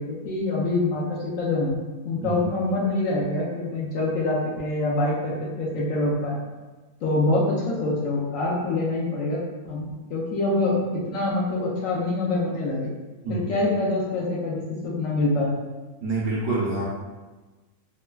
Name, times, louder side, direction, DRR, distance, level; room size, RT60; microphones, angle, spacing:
voice 1, 0.0-1.8 2.0-6.4 7.0-9.4 9.7-10.8 11.1-12.9 13.3-15.5, left 2 dB, 70° left, -5 dB, 0.9 m, -25 dB
voice 2, 16.0-16.8, right 2 dB, 65° right, -5 dB, 0.8 m, -26 dB
3.2 x 2.2 x 2.2 m, 1.2 s
omnidirectional pair, 1.6 m